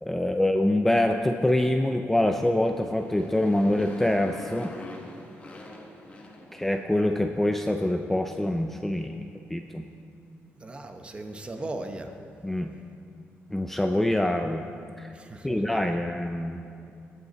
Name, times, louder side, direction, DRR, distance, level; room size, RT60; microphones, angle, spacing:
voice 1, 0.0-4.7 6.5-9.9 12.4-12.7 13.5-14.6 15.0-15.1 15.4-16.7, left 1 dB, 5° left, 5 dB, 0.4 m, -25 dB
Motorcycle, 2.6-7.1, left 2 dB, 25° left, 1.4 m, -44 dB
voice 2, 10.6-12.1 15.2-15.8, right 2 dB, 25° right, 6 dB, 0.8 m, -37 dB
18.5 x 8.2 x 4.1 m, 2.5 s
cardioid pair, 145°, 5 cm